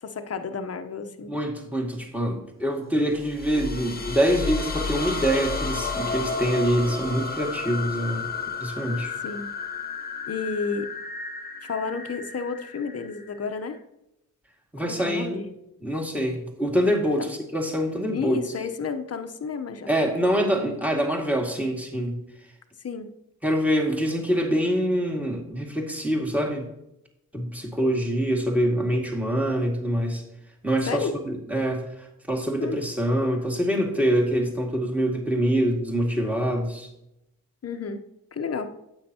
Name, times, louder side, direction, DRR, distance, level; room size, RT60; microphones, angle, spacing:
voice 1, 0.0-1.3 9.2-9.5 10.3-10.9 11.6-13.8 14.8-15.5 18.1-19.9 22.8-23.1 30.9-31.1 32.6-32.7 37.6-38.0 38.3-38.7, left 5 dB, 40° left, 8 dB, 1.0 m, -31 dB
voice 2, 1.3-8.3 8.6-9.1 14.7-15.5 15.8-18.4 19.9-22.2 23.4-26.7 27.3-30.2 30.6-36.9, equal, 5° right, 1 dB, 2.2 m, -25 dB
sound 1, 3.2-13.8, left 4 dB, 25° left, 1.4 m, -32 dB
9.4 x 7.9 x 2.9 m, 0.85 s
cardioid pair, 60°, 36 cm